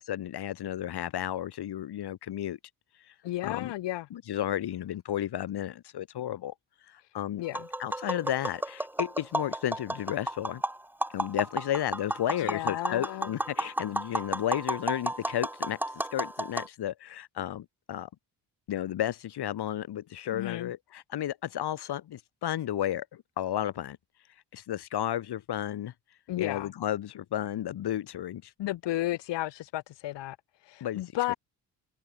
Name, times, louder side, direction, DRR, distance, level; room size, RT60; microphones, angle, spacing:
voice 1, 0.0-2.6 3.4-3.7 4.1-6.5 6.9-7.4 7.8-10.6 11.1-15.8 16.1-18.1 18.7-24.0 24.5-25.9 26.4-28.5 30.8-31.4, left 11 dB, 65° left, 5.4 m, -33 dB
voice 2, 3.2-4.1 7.0-7.1 7.4-7.7 12.4-13.3 20.3-20.7 26.3-26.7 28.6-30.4 30.6-31.3, left 15 dB, 85° left, 4.5 m, -33 dB
Tap, 7.4-16.7, right 1 dB, 5° right, 1.0 m, -33 dB
cardioid pair, 120°, 42 cm